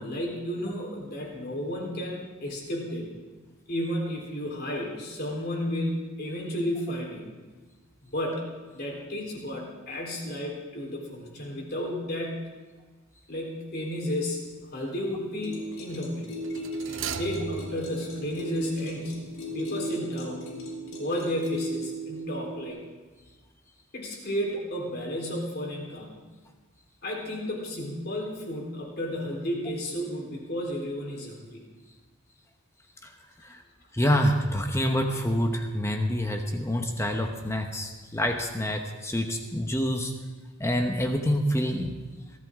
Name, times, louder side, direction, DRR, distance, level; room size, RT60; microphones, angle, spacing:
voice 1, 0.0-3.1 3.7-7.3 8.0-8.4 8.7-12.5 13.3-14.4 14.7-16.4 16.9-20.5 21.0-22.8 23.9-26.2 27.0-31.6, equal, 45° left, -1 dB, 3.8 m, -32 dB
sound 1, 14.0-14.3 16.4-19.2 19.5-19.6, right 6 dB, 60° right, 0.8 m, -39 dB
sound 2, 15.4-22.7, right 1 dB, 65° left, 3.8 m, -36 dB
voice 2, 33.9-40.1 40.6-42.0, equal, 10° left, 4 dB, 1.0 m, -27 dB
22.5 x 14.0 x 3.7 m, 1.3 s
head